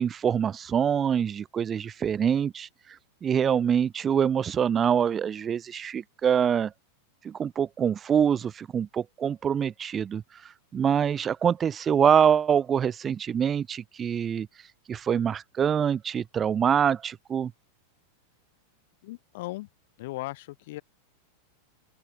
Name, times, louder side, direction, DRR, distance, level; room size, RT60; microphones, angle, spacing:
voice 1, 0.0-2.7 3.2-6.7 7.2-14.5 14.9-17.5, right 8 dB, 25° right, 0.5 m, -25 dB
voice 2, 19.0-19.7 20.0-20.8, left 19 dB, 50° left, 1.2 m, -37 dB
open air
figure-of-eight pair, 90°, 0 cm